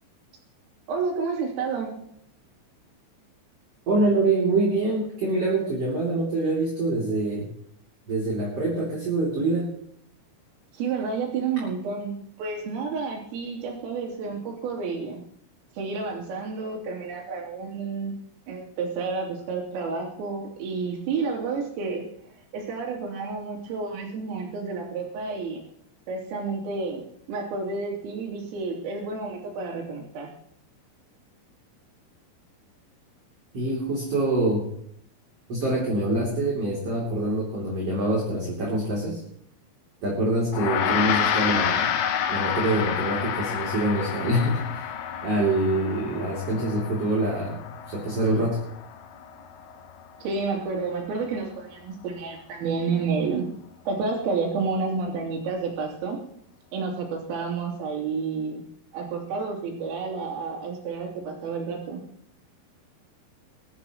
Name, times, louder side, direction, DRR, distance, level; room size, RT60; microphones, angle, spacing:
voice 1, 0.9-2.1 10.7-15.2 15.8-18.2 18.5-22.1 22.5-25.6 26.1-27.0 27.3-30.3 50.2-53.5 53.9-56.2 56.7-58.6 58.9-62.0, right 4 dB, 80° right, -1 dB, 5.5 m, -30 dB
voice 2, 3.9-7.5 8.1-9.6 33.5-34.6 35.5-39.2 40.0-41.9 42.3-44.9 45.2-47.6 47.9-48.6, right 2 dB, 35° right, -4 dB, 3.2 m, -25 dB
Gong, 40.5-50.1, left 8 dB, 85° left, 2.0 m, -29 dB
21.5 x 13.0 x 3.0 m, 0.70 s
omnidirectional pair, 5.8 m